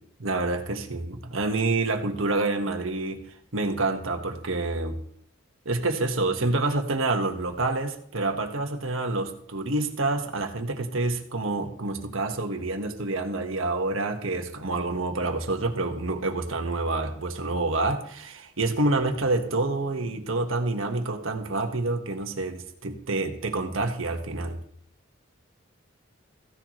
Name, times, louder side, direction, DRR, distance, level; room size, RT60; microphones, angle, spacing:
voice 1, 0.2-3.2 3.5-5.0 5.6-24.6, right 2 dB, 80° right, 4 dB, 1.4 m, -27 dB
15.5 x 10.5 x 3.1 m, 0.67 s
head